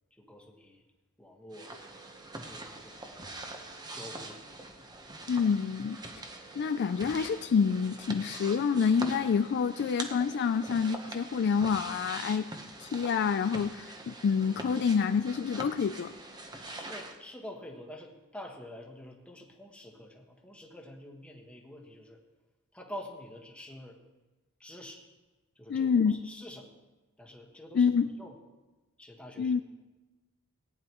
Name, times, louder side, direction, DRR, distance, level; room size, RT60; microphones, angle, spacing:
voice 1, 0.1-0.8 1.2-1.7 2.4-3.3 3.9-4.4 16.6-22.2 22.7-24.0 24.6-25.0 25.5-26.7 27.2-27.9 28.2-28.4 29.0-29.5, left 1 dB, 5° left, 0 dB, 1.4 m, -47 dB
sound 1, 1.5-17.2, right 2 dB, 20° right, 1.0 m, -44 dB
voice 2, 5.3-6.0 6.6-12.5 12.8-16.1 25.7-26.2 27.8-28.1 29.4-29.6, left 6 dB, 50° left, 10 dB, 0.3 m, -27 dB
18.0 x 9.9 x 3.0 m, 1.1 s
head